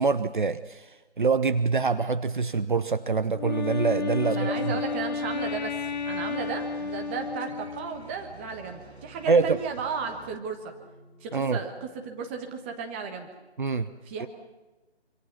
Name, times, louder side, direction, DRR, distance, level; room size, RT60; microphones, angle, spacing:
voice 1, 0.0-4.8 9.3-9.6 11.3-11.6 13.6-13.9 14.2-14.3, right 4 dB, 45° right, 12 dB, 0.9 m, -25 dB
sound 1, 1.4-13.4, left 1 dB, 5° left, 0.8 m, -56 dB
Wind instrument woodwind instrument, 3.3-8.1, left 5 dB, 40° left, 1.2 m, -32 dB
voice 2, 4.3-5.7 6.0-10.7 11.2-13.3 14.0-14.3, right 5 dB, 10° right, 4 dB, 1.3 m, -34 dB
sound 2, 4.5-10.4, right 3 dB, 65° right, 1.8 m, -49 dB
26.5 x 26.0 x 6.0 m, 1.1 s
figure-of-eight pair, 155°, 34 cm